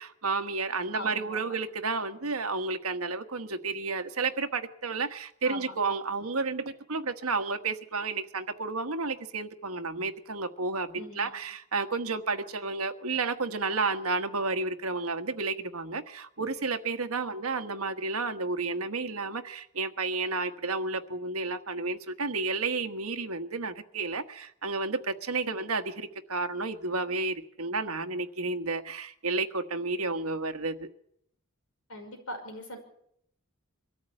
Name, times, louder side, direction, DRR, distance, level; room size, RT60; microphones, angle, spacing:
voice 1, 0.0-30.9, right 3 dB, 80° right, 1.4 m, -31 dB
voice 2, 0.9-1.6 5.4-5.7 10.9-11.3 17.2-17.3 25.4-25.6 31.9-32.8, left 1 dB, 70° left, 5.7 m, -41 dB
23.0 x 13.5 x 8.8 m
head